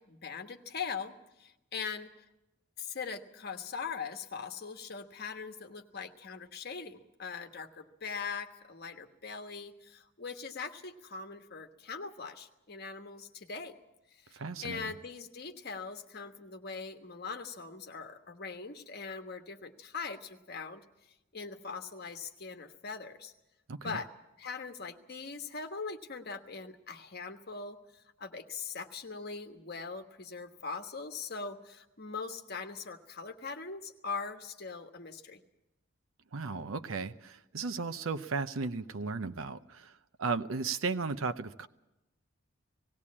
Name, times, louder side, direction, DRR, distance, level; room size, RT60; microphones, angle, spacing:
voice 1, 0.1-2.1 2.8-13.7 14.2-20.8 21.3-23.3 23.8-24.1 24.4-35.4, left 5 dB, 55° left, 6 dB, 1.3 m, -41 dB
voice 2, 14.3-14.9 23.7-24.0 36.3-41.7, right 4 dB, 90° right, 10 dB, 0.7 m, -35 dB
18.5 x 16.5 x 8.6 m, 0.94 s
head